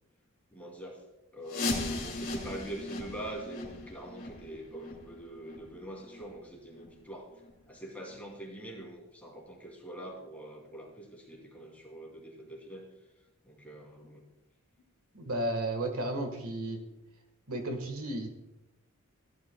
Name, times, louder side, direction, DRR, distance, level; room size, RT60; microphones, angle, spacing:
voice 1, 0.5-1.0 1.3-7.3 7.7-12.9 13.5-14.2, right 1 dB, 5° left, -2 dB, 2.6 m, -44 dB
sound 1, 1.5-7.1 7.4-7.5 8.1-8.2 8.8-8.9 9.4-9.5, left 2 dB, 40° left, 1.9 m, -38 dB
voice 2, 15.1-16.8 17.5-18.3, right 1 dB, 75° right, 5 dB, 1.5 m, -33 dB
15.5 x 11.0 x 2.2 m, 0.94 s
head